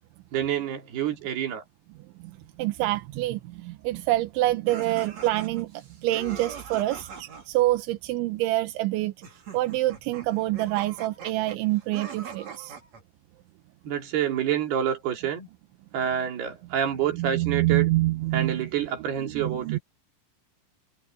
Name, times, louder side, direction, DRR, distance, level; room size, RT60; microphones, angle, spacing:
voice 1, 0.3-1.6 6.9-7.0 13.8-15.5 15.9-17.9 18.3-19.8, right 9 dB, 55° right, 4.9 m, -28 dB
voice 2, 2.2-12.8 17.1-18.7 19.2-19.8, right 17 dB, 80° right, 3.0 m, -27 dB
sound 1, 4.6-7.5 9.2-13.0, right 5 dB, 35° right, 4.1 m, -42 dB
omnidirectional pair, 6.0 m